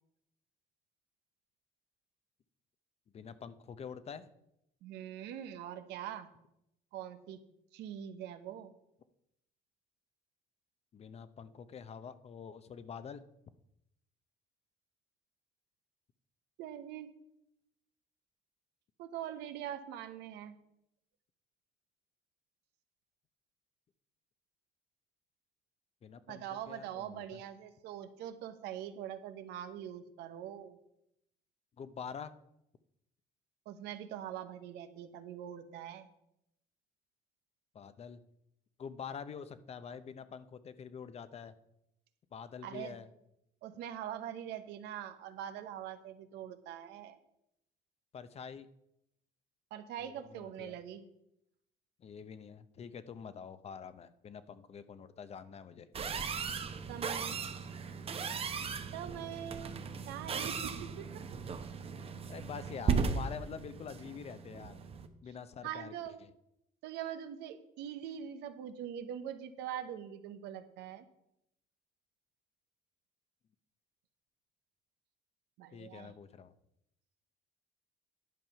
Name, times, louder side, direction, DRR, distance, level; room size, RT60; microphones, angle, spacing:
voice 1, 3.1-4.3 10.9-13.2 26.0-27.4 31.8-32.3 37.7-38.2 38.8-41.5 42.3-43.1 48.1-48.7 50.0-50.8 52.0-55.9 62.3-64.8 65.2-65.9 66.2-66.3 75.7-76.5, left 7 dB, 40° left, 13 dB, 0.6 m, -46 dB
voice 2, 4.8-6.3 6.9-7.4 7.7-8.7 16.6-17.1 19.0-20.6 26.3-30.8 33.7-36.1 42.6-43.0 43.6-47.2 49.7-51.0 56.9-57.4 58.9-59.7 60.1-61.2 65.6-66.2 66.8-71.0 75.6-76.1, right 10 dB, 85° right, 10 dB, 0.9 m, -43 dB
sound 1, 55.9-65.1, right 5 dB, 35° right, 0.8 m, -37 dB
10.5 x 5.3 x 5.7 m, 0.81 s
cardioid pair, 110°, 17 cm